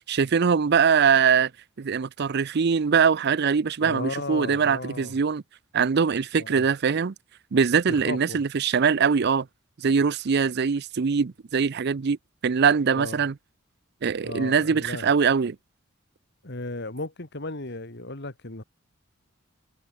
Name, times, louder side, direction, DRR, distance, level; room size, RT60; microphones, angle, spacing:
voice 1, 0.1-1.5 1.8-5.4 5.7-7.1 7.5-9.5 9.8-12.2 12.4-13.3 14.0-15.6, right 6 dB, 55° right, 0.5 m, -22 dB
voice 2, 3.8-5.2 6.3-6.6 7.9-8.4 13.0-13.2 14.2-15.1 16.4-18.6, left 2 dB, 55° left, 2.7 m, -35 dB
head